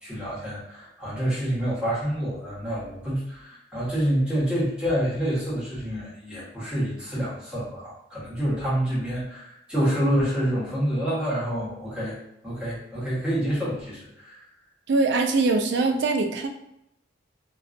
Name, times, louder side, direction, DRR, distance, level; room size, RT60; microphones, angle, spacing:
voice 1, 0.0-12.2 12.4-14.4, equal, 5° right, -9 dB, 1.0 m, -27 dB
voice 2, 14.9-16.5, right 3 dB, 65° right, 4 dB, 0.3 m, -22 dB
2.4 x 2.2 x 2.4 m, 0.81 s
head